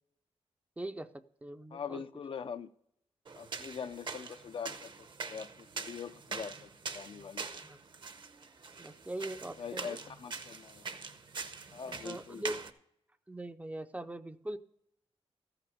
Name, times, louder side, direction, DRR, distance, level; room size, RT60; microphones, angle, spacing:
voice 1, 0.8-1.1 1.4-2.0 7.6-7.8 8.8-10.0 12.0-12.6 13.3-14.6, right 1 dB, 15° right, 0.5 m, -41 dB
voice 2, 1.7-2.7 3.4-7.4 9.6-10.8 11.7-12.4, left 7 dB, 55° left, 0.5 m, -43 dB
sound 1, 3.2-12.7, right 4 dB, 45° right, 0.8 m, -44 dB
14.5 x 5.9 x 6.7 m
wide cardioid pair, 170°, 11 cm